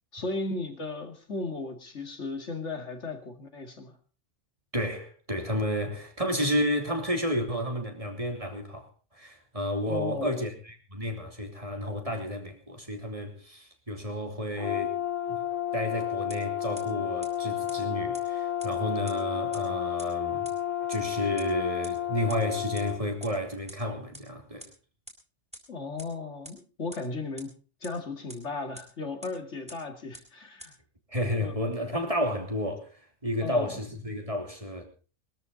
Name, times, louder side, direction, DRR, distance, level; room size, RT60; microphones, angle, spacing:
voice 1, 0.1-3.9 9.9-10.4 25.7-27.5 27.8-30.8 31.4-31.5 33.4-33.8, left 3 dB, 70° left, 2.6 m, -35 dB
voice 2, 4.7-15.0 15.3-15.4 15.7-20.5 20.9-24.7 31.1-34.8, equal, 25° right, 3.1 m, -31 dB
Brass instrument, 14.6-23.0, left 11 dB, 85° left, 2.7 m, -31 dB
sound 1, 16.3-16.4 16.8-16.9 17.2-17.3 17.7-17.8 18.1-18.2 18.6-18.7 19.1-19.2 19.5-19.6 20.0-20.1 20.4-20.5 20.9-21.0 21.4-21.5 21.8-21.9 22.3-22.4 22.8-22.9 23.2-23.3 23.7-23.8 24.1-24.2 24.6-24.7 25.1-25.2 25.5-25.6 26.0-26.1 26.4-26.5 26.9-27.0 27.4-27.5 27.8-27.9 28.3-28.4 28.7-28.8 29.2-29.3 29.7-29.8 30.1-30.2 30.6-30.7, equal, 5° right, 4.3 m, -43 dB
21.5 x 13.5 x 4.0 m
omnidirectional pair, 1.3 m